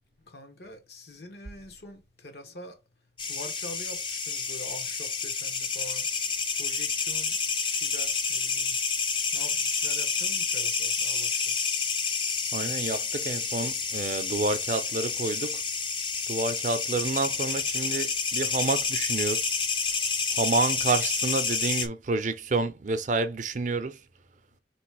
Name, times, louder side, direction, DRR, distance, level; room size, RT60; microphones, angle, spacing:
voice 1, 0.3-2.7 3.3-6.0 6.6-7.4 7.6-8.8 9.3-11.4, left 1 dB, 60° left, 1.1 m, -44 dB
sound 1, 3.2-21.9, left 5 dB, 30° left, 0.6 m, -29 dB
voice 2, 12.5-15.6 16.3-19.6 20.3-24.0, right 3 dB, 45° right, 0.5 m, -29 dB
3.3 x 3.1 x 4.7 m
head